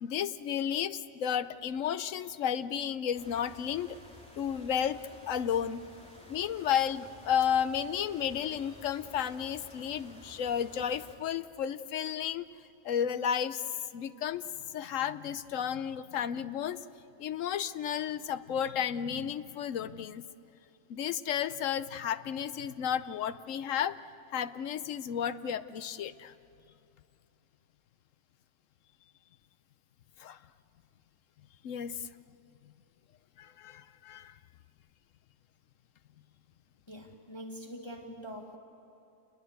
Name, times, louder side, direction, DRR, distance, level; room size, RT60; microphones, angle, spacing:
voice 1, 0.0-4.0 4.4-5.8 6.3-12.5 12.8-13.6 13.9-14.5 14.7-16.8 17.2-20.2 20.9-24.0 24.3-26.3 30.2-30.4 31.6-32.1 33.4-34.3, left 9 dB, 75° left, 13 dB, 1.1 m, -32 dB
sound 1, 3.1-11.2, left 1 dB, 5° left, 3.1 m, -53 dB
voice 2, 36.9-38.6, equal, 20° left, 1 dB, 1.8 m, -44 dB
29.0 x 21.0 x 8.0 m, 2.8 s
omnidirectional pair, 1.3 m